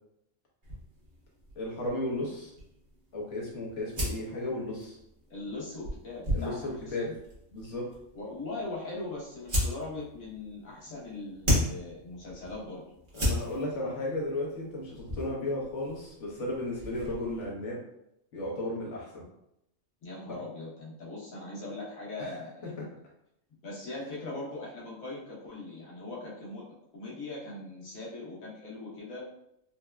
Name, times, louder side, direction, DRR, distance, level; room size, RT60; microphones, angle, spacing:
sound 1, 0.6-17.5, equal, 40° right, 1.1 m, -36 dB
voice 1, 1.6-2.5 3.1-5.0 6.3-7.1 7.5-7.8 13.1-17.8 18.3-19.2 20.3-20.4 22.2-22.3, left 1 dB, 65° left, -4 dB, 1.2 m, -34 dB
voice 2, 5.3-7.1 8.1-12.8 20.0-22.7 23.6-26.6 26.9-29.2, left 2 dB, 85° left, -5 dB, 1.4 m, -40 dB
4.0 x 2.2 x 2.3 m, 0.79 s
omnidirectional pair, 1.4 m